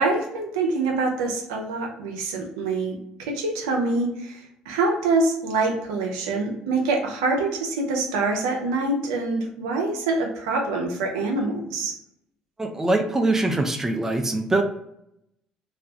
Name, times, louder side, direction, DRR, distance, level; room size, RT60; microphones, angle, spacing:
voice 1, 0.0-12.0, right 3 dB, 90° right, 1 dB, 0.5 m, -25 dB
voice 2, 12.6-14.6, right 2 dB, 15° right, 4 dB, 0.5 m, -23 dB
2.3 x 2.1 x 2.7 m, 0.78 s
supercardioid pair, 70°, 3 cm